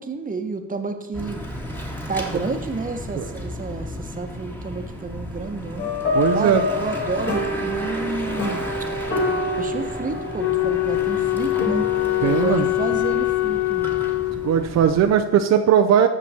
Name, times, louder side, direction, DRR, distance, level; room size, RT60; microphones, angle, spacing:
voice 1, 0.0-1.4 2.1-5.9 6.3-8.6 9.3-11.8 12.3-14.1, right 4 dB, 30° right, 6 dB, 1.2 m, -30 dB
Bicycle / Mechanisms, 1.1-15.1, equal, 5° left, 1.8 m, -34 dB
sound 1, 5.8-12.2, left 2 dB, 35° left, 2.7 m, -27 dB
voice 2, 6.1-6.6 12.2-12.7 14.4-16.1, right 9 dB, 65° right, 5 dB, 0.7 m, -18 dB
Wind instrument woodwind instrument, 10.4-14.8, left 20 dB, 75° left, 0.5 m, -23 dB
14.0 x 6.1 x 4.3 m, 1.2 s
cardioid pair, 100°, 29 cm